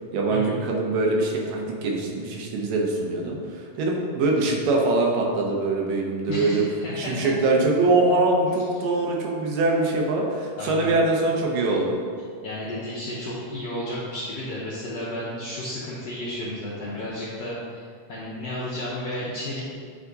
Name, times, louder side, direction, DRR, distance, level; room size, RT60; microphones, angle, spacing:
voice 1, 0.1-6.6 7.0-12.0, right 2 dB, 80° right, -1 dB, 2.5 m, -23 dB
voice 2, 6.3-7.3 10.6-10.9 12.4-19.6, left 1 dB, 75° left, -8 dB, 1.5 m, -32 dB
9.1 x 3.5 x 3.9 m, 2.2 s
omnidirectional pair, 3.9 m